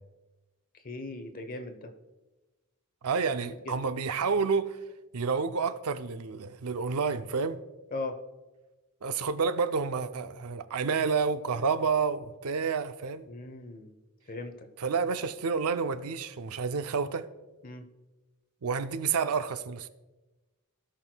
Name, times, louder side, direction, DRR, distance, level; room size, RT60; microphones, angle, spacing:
voice 1, 0.7-1.9 3.4-3.7 7.9-8.2 13.3-13.9 14.3-14.7 17.6-17.9, left 2 dB, 40° left, 0.9 m, -39 dB
voice 2, 3.0-4.8 5.1-7.6 9.0-13.3 14.8-17.3 18.6-19.9, right 5 dB, 85° right, 0.5 m, -29 dB
17.0 x 6.3 x 2.3 m
head